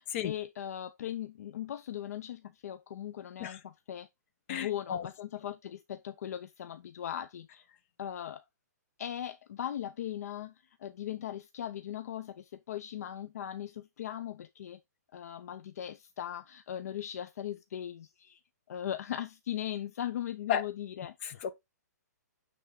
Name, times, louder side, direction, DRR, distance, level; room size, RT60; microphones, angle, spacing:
voice 1, 0.0-4.1 4.5-7.7 8.0-8.4 9.0-10.5 10.8-14.8 15.1-18.4 18.7-21.4, left 10 dB, 60° left, 0.5 m, -39 dB
voice 2, 4.5-5.1 20.5-20.7 21.2-21.5, left 9 dB, 40° left, 0.9 m, -33 dB
8.4 x 3.5 x 3.6 m
hypercardioid pair, 140°, 9 cm